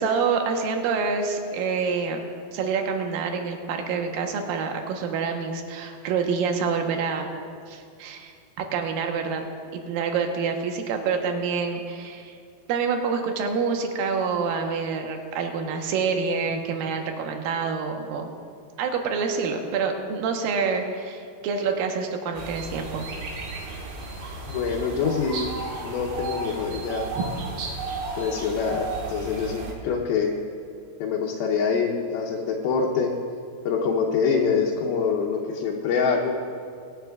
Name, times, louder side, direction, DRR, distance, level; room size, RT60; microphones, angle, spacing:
voice 1, 0.0-2.2 2.5-7.3 7.7-9.4 9.7-12.4 12.7-18.3 18.8-23.1 27.1-27.2, right 5 dB, 70° right, 3 dB, 2.6 m, -27 dB
sound 1, 22.3-29.7, right 3 dB, 90° right, 3.4 m, -34 dB
voice 2, 24.5-25.5 25.8-27.1 28.2-30.3 31.0-33.1 33.7-36.4, left 5 dB, 80° left, -2 dB, 2.7 m, -25 dB
24.5 x 10.0 x 2.3 m, 2.3 s
omnidirectional pair, 4.5 m